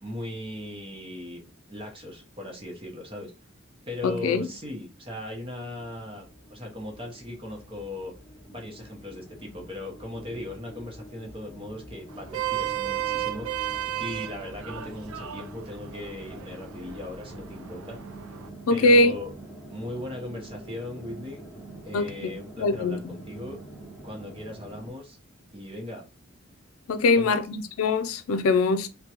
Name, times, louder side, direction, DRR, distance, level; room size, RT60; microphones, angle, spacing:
voice 1, 0.0-3.3 3.9-8.1 8.5-13.6 14.0-18.0 18.7-19.3 19.7-21.4 21.8-23.6 24.0-25.2 25.5-26.0 27.0-27.4, left 1 dB, 25° right, 0.9 m, -38 dB
voice 2, 4.0-4.5 18.7-19.2 21.9-22.3 22.6-23.2 26.9-28.9, left 2 dB, 85° left, 0.4 m, -22 dB
sound 1, 5.7-24.9, right 1 dB, 5° left, 0.9 m, -45 dB
Vehicle horn car horn honking, 12.1-18.5, right 12 dB, 85° right, 0.5 m, -34 dB
3.5 x 2.2 x 2.9 m
head